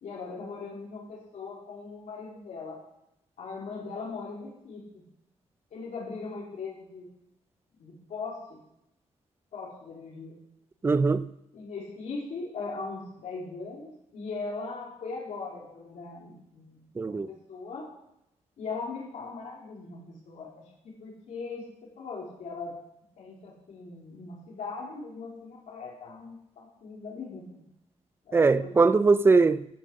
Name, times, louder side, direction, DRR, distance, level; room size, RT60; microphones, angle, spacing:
voice 1, 0.0-2.8 3.4-5.0 5.7-7.1 7.8-8.6 9.5-10.4 11.5-17.9 18.6-21.7 22.0-22.7 23.2-27.6 28.3-29.1, left 4 dB, 80° left, 3.4 m, -39 dB
voice 2, 10.8-11.3 17.0-17.3 28.3-29.7, right 4 dB, 20° right, 0.4 m, -21 dB
15.0 x 7.6 x 6.4 m
wide cardioid pair, 160°, 12 cm